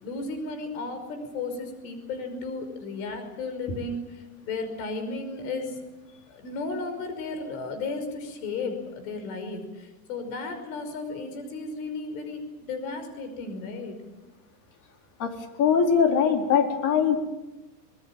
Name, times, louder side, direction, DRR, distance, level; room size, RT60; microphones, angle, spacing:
voice 1, 0.0-5.8 6.3-14.0, left 3 dB, 60° left, 7 dB, 5.7 m, -34 dB
voice 2, 15.2-17.2, left 7 dB, 40° left, 3 dB, 4.3 m, -22 dB
26.5 x 20.5 x 7.4 m, 1.1 s
hypercardioid pair, 120°, 47 cm